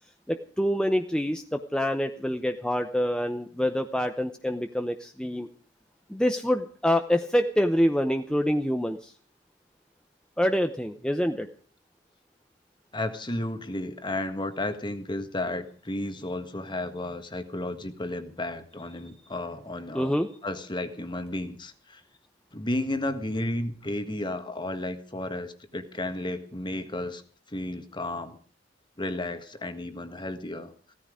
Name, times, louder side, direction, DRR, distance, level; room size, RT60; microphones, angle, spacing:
voice 1, 0.3-5.5 6.1-9.1 10.4-11.5 19.9-20.3, equal, 5° left, 6 dB, 0.8 m, -26 dB
voice 2, 12.9-22.0 22.5-27.2 27.5-28.4 29.0-30.7, left 1 dB, 25° left, 9 dB, 1.6 m, -33 dB
17.0 x 14.0 x 5.0 m, 0.43 s
head